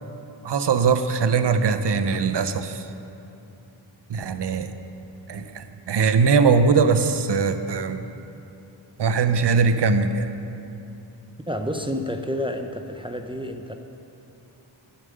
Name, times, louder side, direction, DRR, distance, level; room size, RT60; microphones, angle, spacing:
voice 1, 0.4-2.9 4.1-4.7 5.3-8.0 9.0-10.3, right 5 dB, 55° right, 9 dB, 0.7 m, -21 dB
voice 2, 11.5-13.7, equal, 10° right, 5 dB, 0.4 m, -29 dB
10.5 x 7.1 x 6.5 m, 2.7 s
wide cardioid pair, 110°, 49 cm